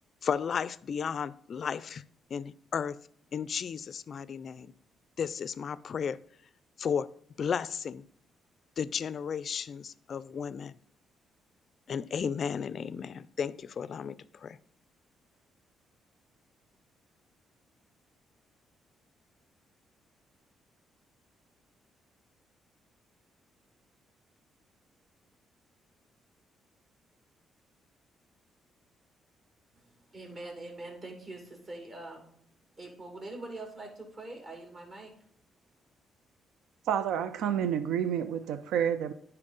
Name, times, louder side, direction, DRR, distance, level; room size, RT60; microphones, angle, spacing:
voice 1, 0.2-2.0 2.3-3.0 3.3-4.7 5.2-6.2 6.8-7.1 7.4-8.0 8.8-10.7 11.9-14.6, left 7 dB, 50° left, 0.3 m, -34 dB
voice 2, 30.1-32.3 32.8-35.1, right 2 dB, 45° right, 2.2 m, -43 dB
voice 3, 36.9-39.1, right 9 dB, 85° right, 0.4 m, -29 dB
9.9 x 4.4 x 3.9 m
cardioid pair, 90°, 0 cm